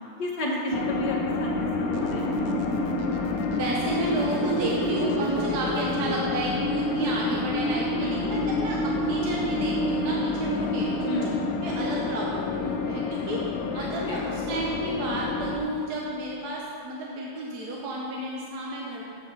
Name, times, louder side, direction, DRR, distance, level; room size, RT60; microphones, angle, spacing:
voice 1, 0.2-2.3 8.0-8.4 11.1-11.4 13.8-14.2, equal, 55° left, -3 dB, 1.8 m, -32 dB
sound 1, 0.7-15.6, left 3 dB, 90° left, 0.7 m, -28 dB
sound 2, 1.9-5.9, right 5 dB, 90° right, 1.5 m, -33 dB
voice 2, 3.5-11.3 11.6-13.4 13.7-19.0, right 2 dB, 60° right, -3 dB, 1.2 m, -32 dB
7.9 x 5.7 x 6.6 m, 2.4 s
omnidirectional pair, 2.3 m